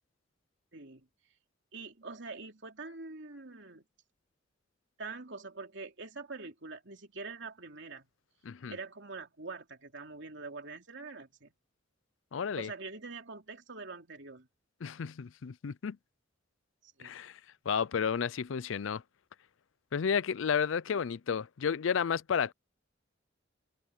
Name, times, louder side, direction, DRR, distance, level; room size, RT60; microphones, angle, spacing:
voice 1, 0.7-1.1 1.7-3.8 5.0-8.1 8.7-11.5 12.6-14.5 16.8-17.2, right 3 dB, 65° right, 3.1 m, -44 dB
voice 2, 8.4-8.8 12.3-12.7 14.8-16.0 17.0-17.4 17.7-19.0 19.9-22.5, left 7 dB, 80° left, 0.5 m, -32 dB
head